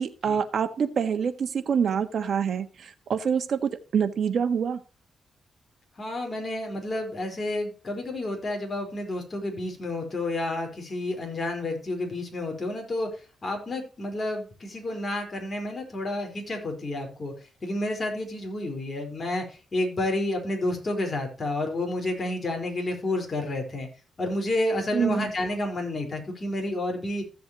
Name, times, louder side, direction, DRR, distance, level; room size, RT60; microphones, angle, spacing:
voice 1, 0.0-4.8 24.9-25.3, right 7 dB, 65° right, 9 dB, 1.4 m, -26 dB
voice 2, 6.0-13.1 13.4-17.3 17.6-19.4 19.7-23.9 24.2-27.2, left 1 dB, 35° left, 2 dB, 4.5 m, -30 dB
15.0 x 7.6 x 3.0 m, 0.34 s
cardioid pair, 105°, 0 cm